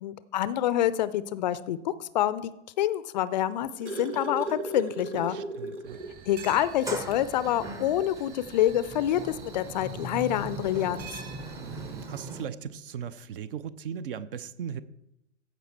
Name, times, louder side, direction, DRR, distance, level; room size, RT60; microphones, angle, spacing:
voice 1, 0.0-2.5 2.8-5.4 6.3-11.1, left 12 dB, 40° left, 16 dB, 0.4 m, -27 dB
sound 1, 3.3-6.2 6.6-6.7 7.1-7.3 8.4-8.5, right 2 dB, 80° right, 1.3 m, -36 dB
voice 2, 5.2-6.0 11.6-14.8, right 8 dB, 50° right, 16 dB, 0.6 m, -38 dB
sound 2, 5.9-12.1, right 5 dB, 25° right, 1.5 m, -46 dB
Sliding door, 6.5-12.5, right 1 dB, 10° right, 0.6 m, -40 dB
15.0 x 5.2 x 4.4 m, 0.84 s
figure-of-eight pair, 100°, 36 cm